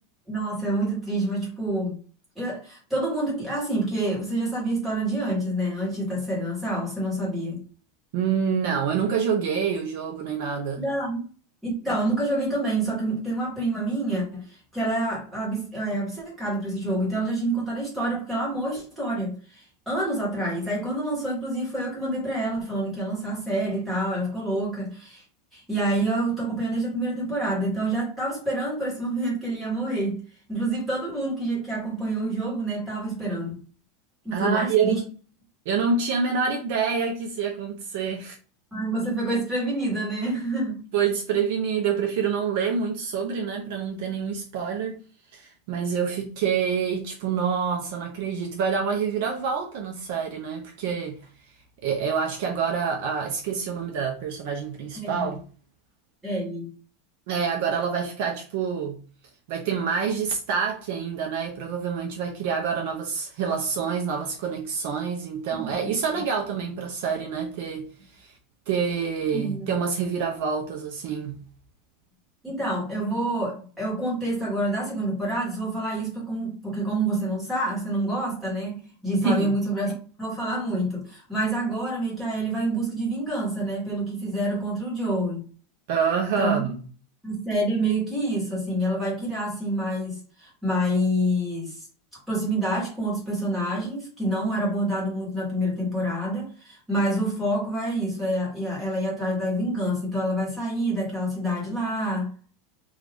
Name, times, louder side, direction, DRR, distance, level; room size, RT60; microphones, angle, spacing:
voice 1, 0.3-2.0 2.4-7.6 10.8-11.2 11.6-14.4 14.7-25.2 25.5-30.2 30.5-33.6 34.2-35.0 38.7-40.8 55.0-55.4 56.2-56.7 65.5-65.9 69.3-69.7 72.4-78.8 79.0-79.9 80.2-85.4 86.4-86.6 87.2-91.8 92.3-102.3, right 1 dB, 5° right, 1.2 m, -27 dB
voice 2, 8.1-10.8 34.3-35.0 35.7-38.4 40.9-45.0 45.3-51.2 51.8-55.4 57.3-59.0 59.5-68.3 68.7-71.4 79.2-79.5 85.9-86.8, right 6 dB, 50° right, 0.5 m, -27 dB
2.5 x 2.4 x 3.3 m
supercardioid pair, 180°, 0 cm